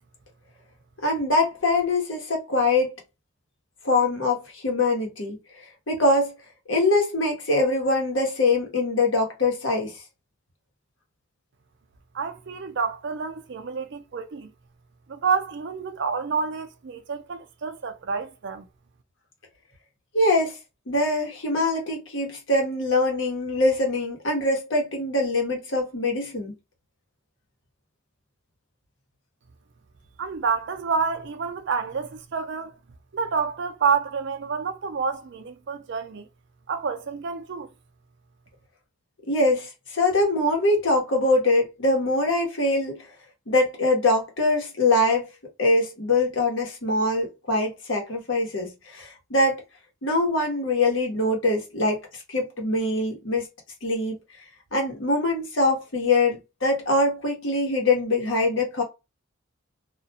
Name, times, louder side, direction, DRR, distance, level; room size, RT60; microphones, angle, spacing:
voice 1, 1.0-2.9 3.8-5.4 5.9-6.3 6.7-10.0 20.1-20.6 20.9-26.5 39.3-43.1 43.5-45.3 45.6-49.6 50.0-52.0 52.3-53.5 53.8-54.1 54.7-58.8, left 2 dB, 65° left, 1.0 m, -23 dB
voice 2, 12.1-14.5 15.1-18.7 30.2-32.7 33.1-36.3 36.7-37.7, right 5 dB, 60° right, 0.5 m, -28 dB
2.4 x 2.2 x 2.7 m
head